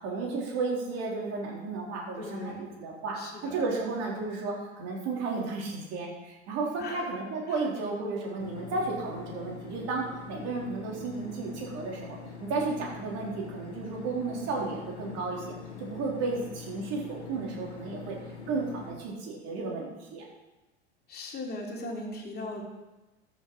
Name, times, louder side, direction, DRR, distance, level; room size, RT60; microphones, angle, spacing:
voice 1, 0.0-3.2 3.4-15.5 15.8-18.2 18.5-20.3, right 3 dB, 50° right, -2 dB, 3.8 m, -33 dB
voice 2, 2.2-2.6 3.2-3.6 6.8-7.1 21.1-22.6, left 2 dB, 30° left, -1 dB, 2.9 m, -38 dB
sound 1, 8.4-18.9, left 5 dB, 75° left, 2.1 m, -44 dB
13.5 x 6.6 x 4.8 m, 1.1 s
hypercardioid pair, 85°, 34 cm